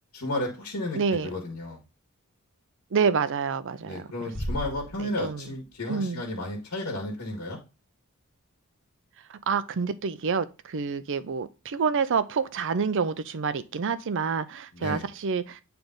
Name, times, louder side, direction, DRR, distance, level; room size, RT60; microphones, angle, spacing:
voice 1, 0.1-1.8 3.8-7.6 14.7-15.0, left 1 dB, 75° left, 1.7 m, -33 dB
voice 2, 0.9-1.3 2.9-4.1 5.0-5.5 5.9-6.2 9.5-15.6, right 5 dB, 60° right, 0.5 m, -28 dB
Bass drum, 4.3-5.8, equal, 5° left, 1.3 m, -35 dB
8.8 x 3.4 x 3.9 m
head